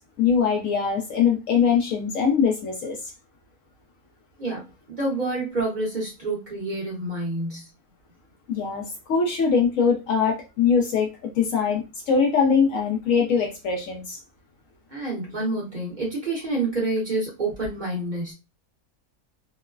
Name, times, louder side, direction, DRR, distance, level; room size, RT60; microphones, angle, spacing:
voice 1, 0.2-3.0 8.5-14.2, left 6 dB, 65° left, 1 dB, 0.9 m, -22 dB
voice 2, 4.4-7.7 14.9-18.3, right 2 dB, 35° right, -4 dB, 0.9 m, -28 dB
3.0 x 2.0 x 2.3 m, 0.26 s
omnidirectional pair, 1.6 m